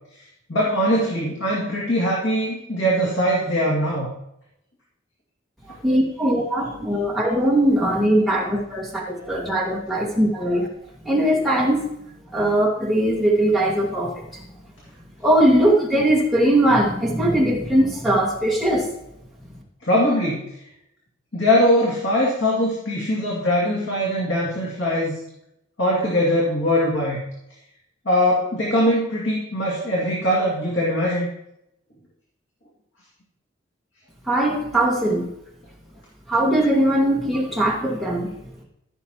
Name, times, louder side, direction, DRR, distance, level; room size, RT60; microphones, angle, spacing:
voice 1, 0.5-4.1 19.8-20.5 21.3-25.2 25.8-27.2 28.1-31.3, equal, 70° left, -5 dB, 2.4 m, -21 dB
voice 2, 5.7-10.7 11.0-11.9 12.3-14.4 15.2-18.9 34.3-35.3 36.3-38.3, right 1 dB, ahead, -3 dB, 2.0 m, -20 dB
15.0 x 6.5 x 3.0 m, 0.80 s
head